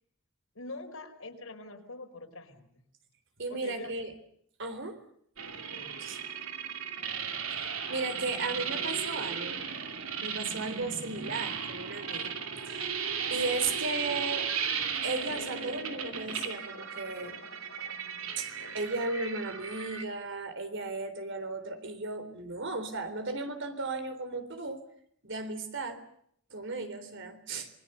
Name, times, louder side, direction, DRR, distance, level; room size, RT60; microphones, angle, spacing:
voice 1, 0.5-2.7 3.5-3.9 5.7-5.9, left 2 dB, 85° left, 4 dB, 4.9 m, -44 dB
voice 2, 3.4-4.1 4.6-5.0 6.0-6.2 7.9-9.6 10.2-12.4 12.7-14.5 15.0-17.4 18.4-24.8 25.2-26.0 26.5-27.7, right 3 dB, 65° right, 9 dB, 3.8 m, -35 dB
sound 1, 5.4-20.0, right 7 dB, 90° right, 2.8 m, -36 dB
sound 2, 15.2-19.2, left 2 dB, 65° left, 3.5 m, -49 dB
26.5 x 22.5 x 7.0 m, 0.69 s
head